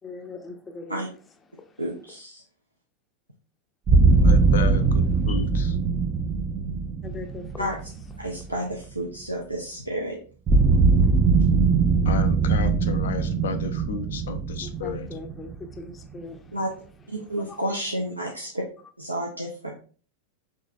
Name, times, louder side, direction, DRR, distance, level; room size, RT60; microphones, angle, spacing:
voice 1, 0.0-1.0 1.5-1.8 4.1-4.3 5.3-5.4 7.0-7.7 14.6-16.6 17.5-17.6 19.4-19.5, left 4 dB, 20° left, 6 dB, 0.6 m, -41 dB
voice 2, 1.8-2.4 7.6-7.8 8.2-10.2 16.5-16.7 17.1-18.6 19.0-19.7, equal, 85° right, -2 dB, 0.6 m, -30 dB
sound 1, 3.9-8.8 10.5-16.1, right 4 dB, 30° right, 0.5 m, -21 dB
voice 3, 4.2-5.7 12.0-15.1, left 5 dB, 60° left, 9 dB, 0.5 m, -32 dB
5.3 x 3.1 x 2.4 m, 0.39 s
figure-of-eight pair, 90°, 0 cm